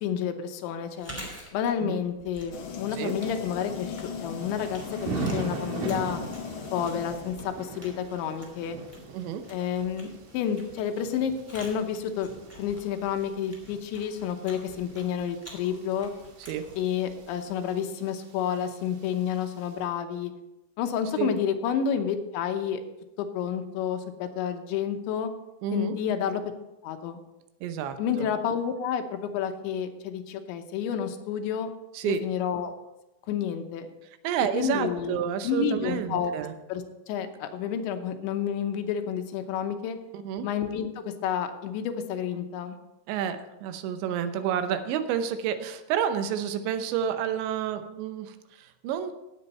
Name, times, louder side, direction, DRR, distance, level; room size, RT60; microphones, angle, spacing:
voice 1, 0.0-1.1 1.5-6.2 6.7-8.8 9.5-12.3 12.6-16.1 16.8-20.3 20.8-22.8 23.2-25.3 25.7-26.4 26.8-27.2 28.0-31.7 32.0-32.7 33.3-33.9 34.5-36.3 36.7-40.0 40.4-42.8, left 8 dB, 85° left, 6 dB, 3.3 m, -30 dB
Chewing mastication, 0.8-17.7, equal, 5° right, 1.8 m, -48 dB
sound 1, 2.5-7.8, left 6 dB, 60° left, 2.7 m, -38 dB
Thunder / Rain, 2.9-19.8, right 3 dB, 60° right, 2.8 m, -41 dB
voice 2, 25.6-26.0 27.6-28.3 31.9-32.2 34.2-36.5 40.1-40.5 43.1-49.1, right 9 dB, 85° right, 9 dB, 3.1 m, -30 dB
17.0 x 7.9 x 4.3 m, 0.95 s
omnidirectional pair, 5.1 m